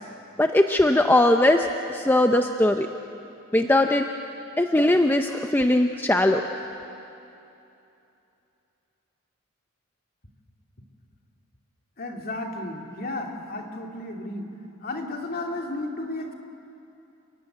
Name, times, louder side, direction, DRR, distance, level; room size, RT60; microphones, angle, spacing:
voice 1, 0.4-2.9 3.5-4.0 4.6-6.4, left 1 dB, 10° left, 5 dB, 0.6 m, -20 dB
voice 2, 12.0-14.5 14.8-16.3, left 2 dB, 45° left, 1 dB, 2.7 m, -33 dB
29.5 x 16.5 x 9.2 m, 2.8 s
head